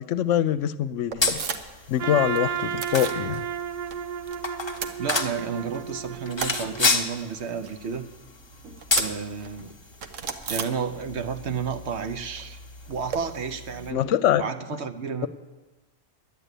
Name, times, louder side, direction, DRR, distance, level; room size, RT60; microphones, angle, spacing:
voice 1, 0.0-1.4 1.9-3.4 13.9-14.4, left 10 dB, 80° left, 14 dB, 0.9 m, -24 dB
sound 1, 1.1-3.2 3.6-4.4 4.6-5.6 6.0-11.3 11.6-13.2, right 6 dB, 85° right, 1.2 m, -36 dB
sound 2, 1.2-13.9, left 4 dB, 25° left, 0.7 m, -32 dB
Trumpet, 2.0-7.1, right 8 dB, 45° right, 0.5 m, -33 dB
voice 2, 5.0-8.1 9.0-9.8 10.5-12.6 12.9-14.0 14.4-15.3, right 6 dB, 65° right, 9 dB, 1.0 m, -31 dB
11.0 x 9.0 x 8.2 m, 1.2 s
omnidirectional pair, 1.3 m